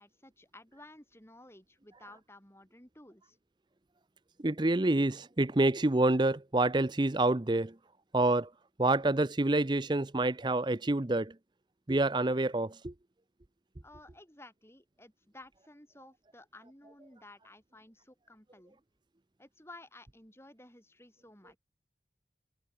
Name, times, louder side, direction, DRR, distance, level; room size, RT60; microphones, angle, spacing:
voice 1, 0.0-3.4 13.8-18.8 19.4-21.6, left 2 dB, 15° left, 6.9 m, -55 dB
voice 2, 4.4-7.7 8.1-8.5 8.8-11.3 11.9-12.9, right 2 dB, 25° right, 0.6 m, -27 dB
head